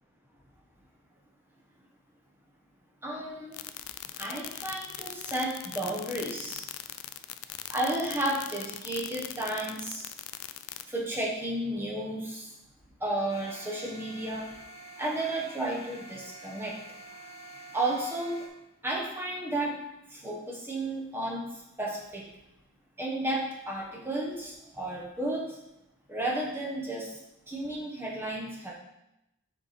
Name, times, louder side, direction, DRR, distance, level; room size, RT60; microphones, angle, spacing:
voice 1, 3.0-3.6 4.2-6.7 7.7-10.1 10.9-12.5 13.0-14.5 15.0-16.8 17.7-18.5 18.8-19.8 20.1-21.5 21.8-22.2 23.0-25.6 26.1-27.2 27.5-28.7, right 1 dB, 10° right, -3 dB, 1.1 m, -32 dB
sound 1, 3.5-10.8, left 13 dB, 85° left, 0.4 m, -39 dB
sound 2, 13.3-18.5, right 1 dB, 30° left, 1.4 m, -48 dB
7.1 x 4.3 x 5.0 m, 0.88 s
head